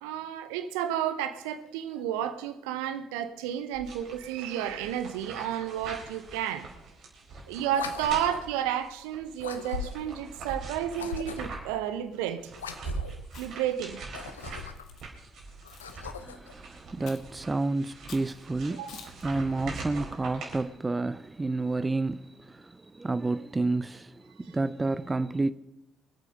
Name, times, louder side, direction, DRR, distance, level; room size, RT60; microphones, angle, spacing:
voice 1, 0.0-6.7 7.5-12.4 13.4-14.0 18.7-19.1, right 10 dB, 75° right, 1.0 m, -32 dB
sound 1, 3.7-11.8 12.1-20.6, right 3 dB, 55° right, 4.2 m, -42 dB
sound 2, 7.7-8.5 9.4-10.2 10.9-11.7 12.5-13.3 14.0-15.0 15.6-16.5, left 6 dB, 85° left, 0.8 m, -39 dB
Chewing mastication, 13.2-13.7 14.4-15.0 15.7-15.9 17.0-17.4 18.1-18.3 18.9-19.2, left 7 dB, 60° left, 1.7 m, -48 dB
voice 2, 16.9-18.8 19.2-22.2 22.9-24.1 24.5-25.5, right 2 dB, 20° right, 0.7 m, -29 dB
23.5 x 8.5 x 5.2 m
figure-of-eight pair, 50°, 0 cm